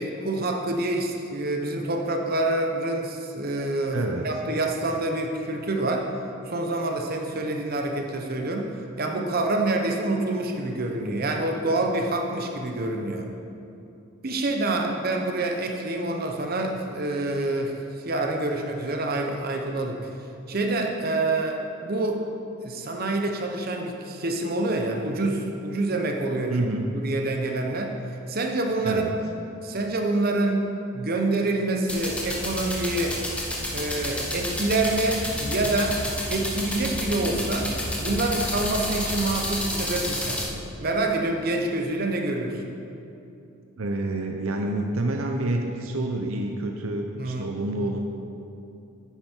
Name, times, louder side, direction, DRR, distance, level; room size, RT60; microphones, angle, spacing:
voice 1, 0.0-4.0 4.2-6.1 6.5-8.7 9.0-13.3 14.2-20.1 20.5-22.2 22.6-26.5 26.9-27.9 28.3-29.1 29.6-33.2 33.7-36.0 36.3-37.7 38.0-42.7 47.2-47.5, right 2 dB, 45° right, 2 dB, 0.9 m, -27 dB
voice 2, 3.9-4.3 26.5-26.9 28.8-29.1 43.8-48.0, right 2 dB, 70° right, 3 dB, 0.7 m, -28 dB
sound 1, 31.9-40.5, left 1 dB, 5° left, 1.1 m, -30 dB
10.0 x 9.3 x 4.5 m, 2.7 s
head